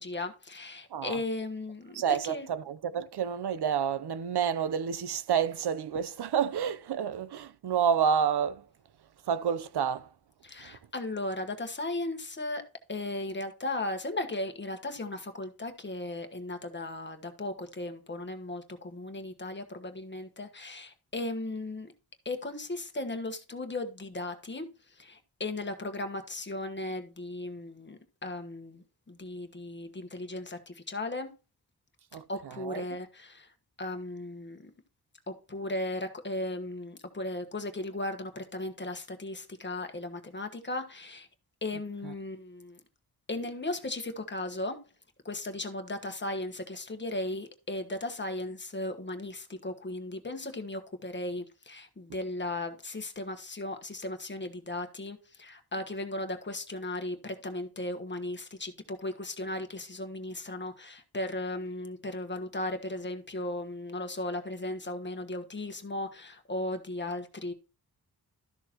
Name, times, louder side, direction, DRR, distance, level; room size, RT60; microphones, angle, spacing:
voice 1, 0.0-2.5 10.4-12.6 12.9-21.9 22.2-24.6 25.0-31.3 32.3-33.5 33.8-34.6 35.3-41.3 41.6-42.8 43.3-44.8 45.2-67.5, left 2 dB, 30° left, 1.3 m, -36 dB
voice 2, 0.9-1.2 1.9-8.6 9.3-10.1 10.6-10.8 32.1-32.8 41.7-42.1, right 8 dB, 80° right, 0.7 m, -29 dB
13.0 x 6.5 x 3.0 m
wide cardioid pair, 140°, 38 cm